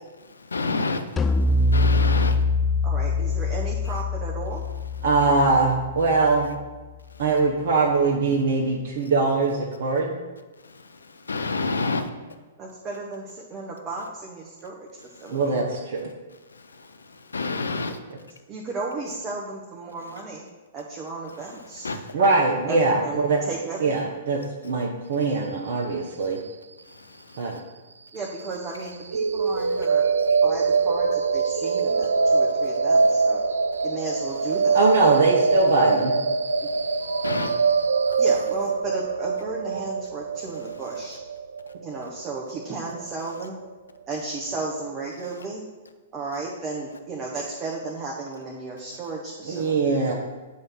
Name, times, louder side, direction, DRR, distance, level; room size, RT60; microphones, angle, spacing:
voice 1, 0.3-2.4 10.6-12.1 15.2-15.4 16.5-18.0 21.8-22.1 26.9-27.6 36.7-37.5, left 3 dB, 80° left, 8 dB, 0.6 m, -30 dB
sound 1, 1.2-6.6, left 3 dB, 15° left, 0.4 m, -24 dB
voice 2, 2.8-4.6 12.6-15.4 18.5-20.4 20.7-21.9 22.7-24.1 28.1-30.0 30.4-33.4 33.8-34.8 36.6-36.7 38.2-41.2 41.8-43.6 44.1-45.6 46.1-49.7, right 3 dB, 25° right, -2 dB, 0.9 m, -34 dB
voice 3, 5.0-6.5 7.2-10.2 15.3-16.1 22.1-23.4 23.8-24.4 24.6-26.4 27.4-27.6 34.7-36.1 39.7-39.8 49.5-50.1, right 3 dB, 55° right, -2 dB, 0.9 m, -22 dB
sound 2, 29.1-43.1, right 4 dB, 75° right, 0.3 m, -23 dB
7.8 x 3.5 x 5.6 m, 1.3 s
figure-of-eight pair, 110°, 0 cm